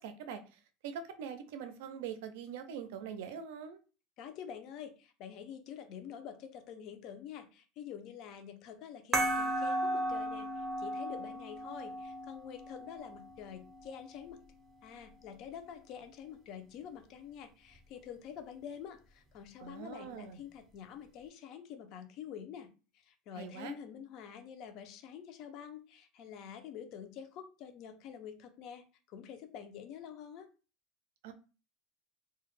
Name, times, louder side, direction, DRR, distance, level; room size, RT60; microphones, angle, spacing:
voice 1, 0.0-3.8 19.6-20.4 23.4-23.7 31.2-31.3, right 7 dB, 85° right, 9 dB, 0.4 m, -43 dB
voice 2, 4.2-14.4 14.8-22.7 23.0-30.5, left 8 dB, 50° left, 8 dB, 0.4 m, -47 dB
sound 1, 9.1-14.2, right 1 dB, 20° right, 0.5 m, -36 dB
2.2 x 2.1 x 3.0 m, 0.34 s
cardioid pair, 155°, 0 cm